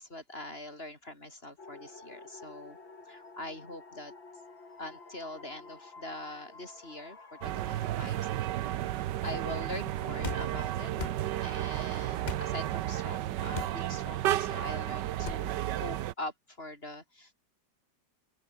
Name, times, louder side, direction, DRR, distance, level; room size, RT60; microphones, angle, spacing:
voice 1, 0.0-2.8 3.1-4.1 4.8-8.5 8.9-10.9 11.4-17.3, left 1 dB, 30° left, 5.7 m, -43 dB
sound 1, 1.6-8.0, left 3 dB, 90° left, 5.4 m, -51 dB
sound 2, 7.4-16.1, right 13 dB, 70° right, 1.3 m, -33 dB
sound 3, 10.2-10.5 11.0-11.2 12.2-12.5 13.5-13.8 15.2-15.4, left 6 dB, 55° left, 0.5 m, -37 dB
open air
omnidirectional pair, 2.0 m